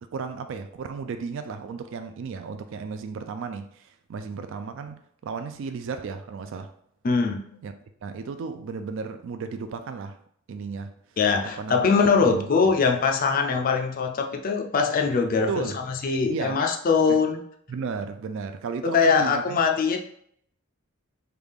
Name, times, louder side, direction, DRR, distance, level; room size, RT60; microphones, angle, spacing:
voice 1, 0.1-6.7 7.6-7.7 8.0-10.2 10.5-10.9 11.6-11.8 12.2-12.5 15.5-15.8 16.3-16.6 17.1-17.2 17.7-19.6, right 5 dB, 60° right, 0.3 m, -34 dB
voice 2, 7.0-7.6 11.2-17.4 18.8-20.0, left 5 dB, 40° left, 0.4 m, -22 dB
3.4 x 2.3 x 3.4 m
head